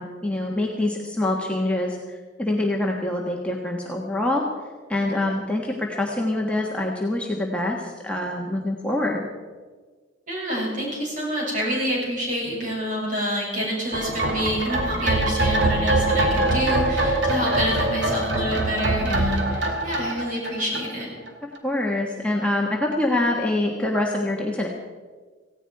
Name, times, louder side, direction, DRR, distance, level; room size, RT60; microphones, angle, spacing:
voice 1, 0.0-4.4 4.9-9.3 21.6-24.7, left 1 dB, 5° left, -2 dB, 1.4 m, -25 dB
voice 2, 10.3-21.1, equal, 40° right, -3 dB, 6.9 m, -27 dB
sound 1, 13.9-21.3 21.5-21.6, right 1 dB, 65° right, 2.3 m, -23 dB
17.5 x 16.5 x 4.8 m, 1.4 s
head